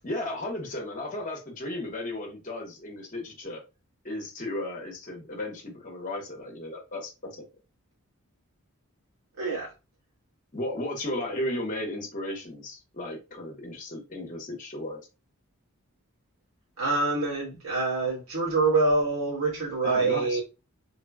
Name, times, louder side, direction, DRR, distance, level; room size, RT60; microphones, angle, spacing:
voice 1, 0.0-3.6 4.0-7.4 10.5-15.0 19.8-20.4, left 1 dB, 35° left, 0.8 m, -34 dB
voice 2, 9.4-9.7 16.8-20.4, right 3 dB, 70° right, 1.3 m, -26 dB
3.3 x 2.1 x 2.2 m
head